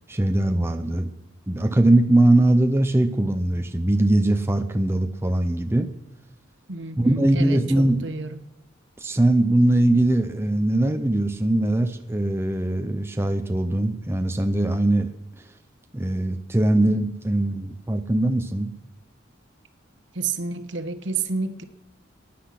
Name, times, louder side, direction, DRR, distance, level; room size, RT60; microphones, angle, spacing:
voice 1, 0.1-1.1 1.5-5.9 7.0-8.1 9.0-15.1 15.9-18.7, right 1 dB, 15° right, 6 dB, 0.6 m, -21 dB
voice 2, 6.7-8.4 20.1-21.6, right 4 dB, 65° right, 10 dB, 1.2 m, -30 dB
19.0 x 10.5 x 6.0 m, 0.90 s
head